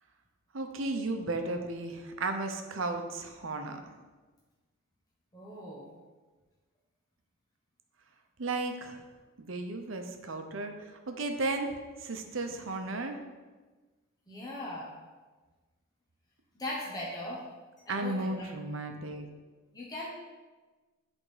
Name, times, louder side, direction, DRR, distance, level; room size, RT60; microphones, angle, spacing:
voice 1, 0.5-3.8 8.4-9.0 9.4-13.2 17.9-19.3, right 2 dB, 65° right, 5 dB, 0.8 m, -34 dB
voice 2, 5.3-5.9 14.3-14.9 16.5-17.4 17.8-18.5 19.7-20.1, left 1 dB, 20° left, -5 dB, 1.0 m, -39 dB
8.7 x 3.6 x 5.0 m, 1.3 s
head